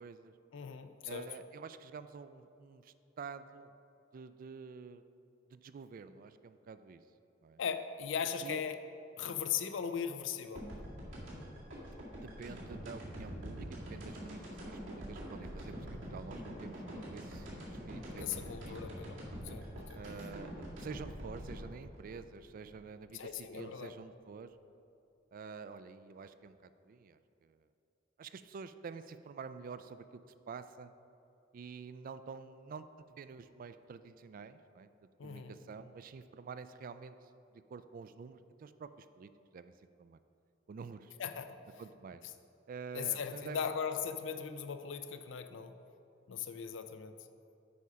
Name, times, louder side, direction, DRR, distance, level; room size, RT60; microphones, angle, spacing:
voice 1, 0.0-0.3 1.1-3.7 4.1-5.0 5.5-7.0 7.4-7.6 8.4-8.6 12.2-18.8 19.9-24.6 25.3-27.6 28.2-30.2 30.5-30.9 31.5-34.9 35.2-40.2 40.7-41.1 41.8-42.2 42.7-43.6, right 5 dB, 45° right, 12 dB, 0.3 m, -48 dB
voice 2, 0.5-1.3 7.6-8.8 9.2-10.6 18.1-19.2 19.4-20.0 23.1-23.9 35.2-35.5 41.2-41.6 42.9-45.7 46.3-47.1, left 7 dB, 75° left, 10 dB, 0.5 m, -38 dB
sound 1, 10.5-23.4, equal, 85° right, 2.1 m, -45 dB
8.4 x 4.8 x 5.6 m, 2.7 s
head